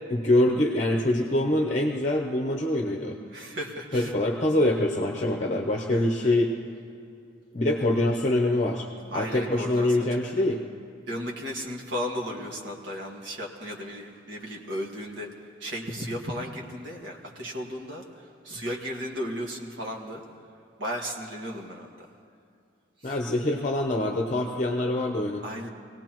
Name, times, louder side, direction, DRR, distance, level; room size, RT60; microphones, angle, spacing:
voice 1, 0.1-3.2 3.9-6.5 7.5-8.9 9.1-10.6 23.0-25.4, left 1 dB, 35° left, 2 dB, 0.8 m, -24 dB
voice 2, 3.3-4.1 5.9-6.4 9.1-10.6 11.1-20.2 20.8-22.1 23.0-23.2 25.4-25.7, equal, 65° right, 0 dB, 1.9 m, -35 dB
26.0 x 17.5 x 3.0 m, 2.4 s
head